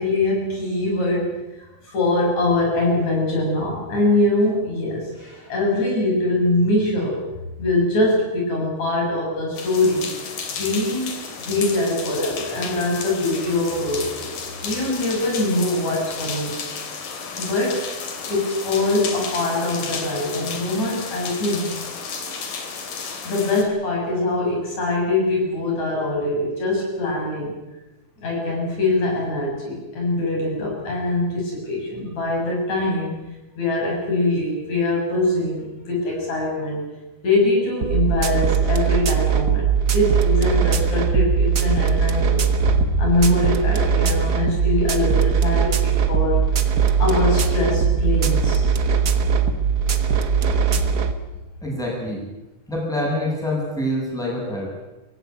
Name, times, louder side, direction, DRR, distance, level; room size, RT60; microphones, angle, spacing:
voice 1, 0.0-1.4 1.9-7.2 7.6-10.1 10.5-14.3 14.6-16.6 17.4-17.8 18.3-21.7 23.2-27.5 28.2-33.1 33.6-36.8 37.2-46.4 47.0-48.6, left 2 dB, 60° left, -2 dB, 8.2 m, -23 dB
sound 1, 9.5-23.6, left 5 dB, 85° left, 4.5 m, -32 dB
sound 2, 37.8-51.1, right 6 dB, 45° right, 1.3 m, -20 dB
voice 2, 51.6-52.3 52.7-54.7, left 1 dB, ahead, -2 dB, 7.6 m, -26 dB
24.0 x 17.0 x 9.5 m, 1.0 s
omnidirectional pair, 3.7 m